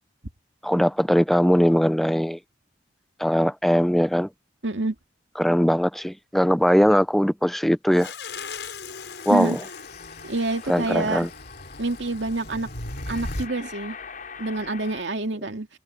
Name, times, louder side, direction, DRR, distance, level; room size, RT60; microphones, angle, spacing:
voice 1, 0.6-2.4 3.2-4.3 5.4-8.1 9.3-9.6 10.7-11.3, equal, ahead, 0.5 m, -20 dB
voice 2, 4.6-4.9 9.3-9.6 10.2-11.3 11.8-12.7 13.1-14.0 14.4-15.7, right 2 dB, 90° right, 2.5 m, -27 dB
sound 1, 8.0-13.5, left 2 dB, 75° left, 7.1 m, -37 dB
sound 2, 8.9-15.0, left 5 dB, 50° left, 7.1 m, -43 dB
head